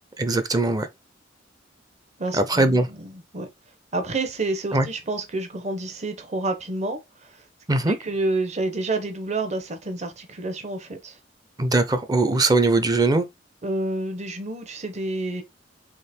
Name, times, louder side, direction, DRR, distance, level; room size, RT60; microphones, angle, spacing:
voice 1, 0.2-0.9 2.3-2.9 4.7-4.9 7.7-8.0 11.6-13.3, right 2 dB, 20° right, 0.5 m, -20 dB
voice 2, 2.2-3.5 3.9-7.4 7.9-11.2 13.6-15.4, right 2 dB, 40° right, 0.9 m, -29 dB
3.7 x 3.4 x 4.2 m
head